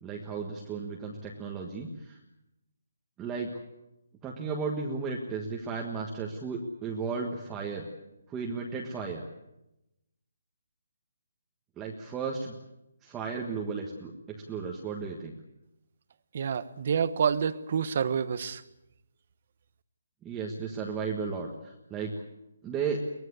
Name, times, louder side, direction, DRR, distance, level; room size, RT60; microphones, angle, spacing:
voice 1, 0.0-2.2 3.2-3.5 4.2-7.8 8.3-9.2 11.8-12.6 13.0-15.4 20.2-22.1 22.6-23.0, right 5 dB, 10° right, -1 dB, 1.5 m, -34 dB
voice 2, 16.3-18.6, right 7 dB, 35° right, 14 dB, 1.1 m, -28 dB
23.5 x 19.0 x 8.2 m, 0.89 s
hypercardioid pair, 175°, 0 cm